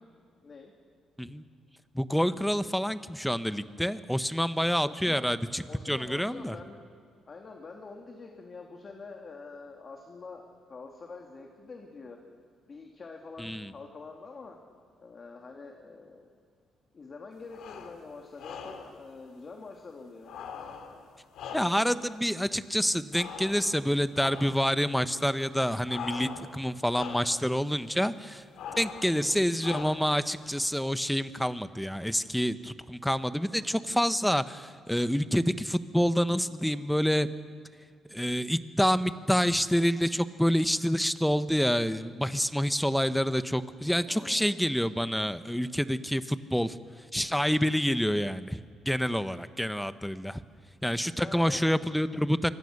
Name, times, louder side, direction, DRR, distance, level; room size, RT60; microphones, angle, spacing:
voice 1, 1.9-6.5 13.4-13.7 21.5-28.4 28.8-37.3 38.1-46.8 47.1-50.4 50.8-52.5, equal, ahead, 12 dB, 1.0 m, -27 dB
voice 2, 4.8-5.3 5.7-6.9 7.3-12.2 12.7-14.6 15.0-16.3 16.9-20.3 29.0-29.4 44.1-44.6 51.1-51.6, left 4 dB, 40° left, 2 dB, 2.5 m, -46 dB
sound 1, 17.5-18.0 18.4-19.0 20.2-22.0 23.1-23.9 24.2-24.7 25.9-26.6 26.9-27.4 28.6-29.2 29.6-30.2, left 7 dB, 80° left, 2.7 m, -41 dB
25.5 x 23.5 x 6.6 m, 2.1 s
cardioid pair, 90°, 0 cm